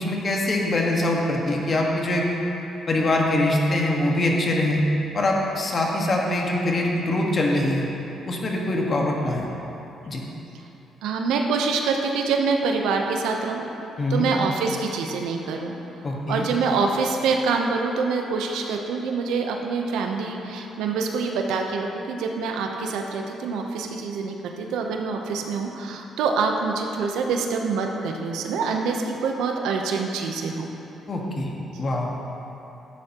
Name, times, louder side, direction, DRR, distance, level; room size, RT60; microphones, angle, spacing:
voice 1, 0.0-2.2 2.9-4.8 5.1-7.9 8.3-9.4 10.1-10.2 14.0-14.3 16.0-16.5 31.1-31.5 31.8-32.1, left 1 dB, 40° left, -1 dB, 1.6 m, -23 dB
voice 2, 11.0-13.6 14.1-15.7 16.3-30.7, right 4 dB, 90° right, 2 dB, 0.8 m, -25 dB
12.5 x 9.2 x 3.0 m, 3.0 s
cardioid pair, 90°, 0 cm